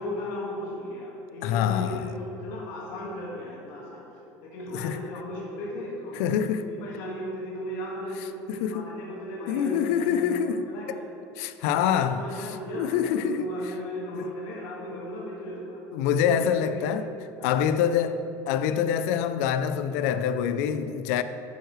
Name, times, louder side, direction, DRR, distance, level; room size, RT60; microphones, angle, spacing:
voice 1, 0.0-4.0 4.4-11.0 11.6-15.8 16.3-17.0 17.4-17.7, left 1 dB, 65° left, 1.8 m, -36 dB
voice 2, 1.4-2.1 4.7-5.0 6.2-6.7 8.5-8.9 9.5-10.6 11.4-13.5 14.1-14.3 15.9-17.1 17.4-18.2 18.5-21.2, left 8 dB, 85° left, 0.5 m, -26 dB
11.0 x 9.3 x 3.2 m
cardioid pair, 165°, 8 cm